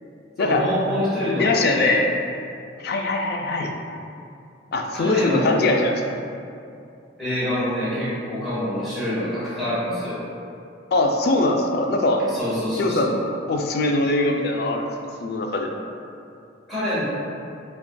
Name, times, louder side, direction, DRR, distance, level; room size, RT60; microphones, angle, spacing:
voice 1, 0.4-2.0 4.9-5.7 7.2-10.2 12.3-13.2 16.7-17.0, left 1 dB, ahead, -12 dB, 1.1 m, -26 dB
voice 2, 1.4-2.0 2.8-3.7 4.7-6.0 10.9-12.2 12.8-13.1 13.5-14.9 15.2-15.7, left 2 dB, 55° left, 2 dB, 0.3 m, -22 dB
5.8 x 2.4 x 2.2 m, 2.5 s
head